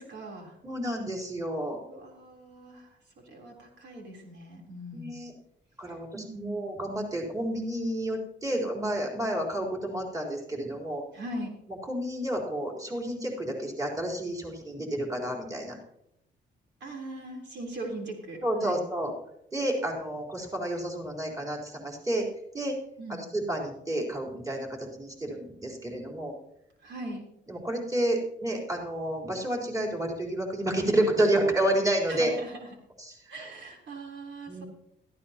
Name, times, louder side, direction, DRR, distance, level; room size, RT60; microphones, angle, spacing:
voice 1, 0.0-0.6 1.9-3.0 3.2-5.2 6.1-6.7 11.1-11.5 16.8-18.8 23.0-23.3 26.8-27.2 32.1-32.7 33.3-34.6, right 1 dB, 65° right, 0 dB, 3.8 m, -40 dB
voice 2, 0.6-1.8 4.9-5.3 5.8-11.0 11.8-15.8 18.4-19.1 19.5-22.3 22.5-22.8 23.1-26.3 27.5-32.3 33.0-33.4 34.5-34.6, right 1 dB, 15° right, -1 dB, 4.2 m, -30 dB
17.0 x 14.0 x 3.0 m, 0.77 s
cardioid pair, 90°, 20 cm